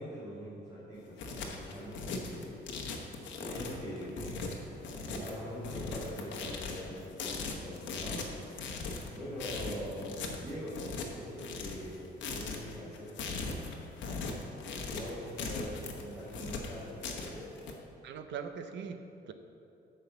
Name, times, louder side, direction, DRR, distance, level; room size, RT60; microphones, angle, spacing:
voice 1, 0.0-2.8 3.4-8.8 9.1-13.7 14.5-17.5, equal, 15° right, -12 dB, 2.5 m, -43 dB
sound 1, 0.9-17.7, left 4 dB, 80° left, 1.2 m, -39 dB
voice 2, 18.0-19.3, right 6 dB, 70° right, 8 dB, 0.7 m, -41 dB
9.1 x 5.6 x 7.0 m, 2.7 s
cardioid pair, 180°, 19 cm